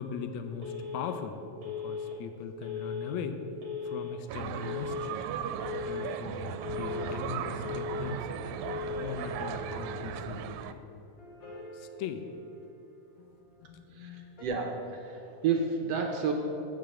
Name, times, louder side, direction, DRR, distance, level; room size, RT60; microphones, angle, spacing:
voice 1, 0.0-3.4 3.8-5.2 5.7-8.4 9.0-10.8 11.7-12.3 13.2-14.3, left 6 dB, 75° left, 8 dB, 1.9 m, -40 dB
Telephone, 0.6-1.1 1.6-2.1 2.6-3.1 3.6-4.1 4.6-5.1 5.6-6.1 6.6-7.1 7.6-8.1 8.6-9.1, left 6 dB, 45° right, 2.7 m, -37 dB
sound 1, 4.3-10.7, right 9 dB, 85° right, 2.0 m, -37 dB
sound 2, 6.8-13.6 14.4-14.5, left 1 dB, 30° left, 2.2 m, -48 dB
voice 2, 13.9-16.3, right 5 dB, 70° right, 2 dB, 1.8 m, -31 dB
14.0 x 5.4 x 7.8 m, 2.8 s
omnidirectional pair, 3.3 m